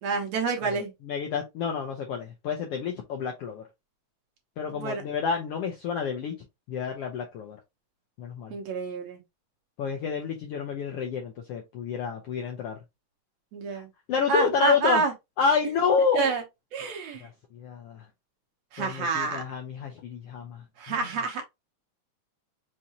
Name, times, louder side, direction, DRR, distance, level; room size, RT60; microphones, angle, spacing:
voice 1, 0.0-0.9 4.7-5.0 8.5-9.2 13.5-13.9 14.3-15.1 16.1-16.4 16.7-17.3 18.7-19.4 20.8-21.4, right 4 dB, 65° right, 2.0 m, -28 dB
voice 2, 0.7-3.6 4.6-6.4 6.7-7.6 8.2-8.5 9.8-12.8 13.7-13.8 14.1-15.0 15.4-16.4 17.2-18.0 18.8-21.1, left 6 dB, 75° left, 1.4 m, -29 dB
5.5 x 2.6 x 2.9 m
omnidirectional pair, 3.5 m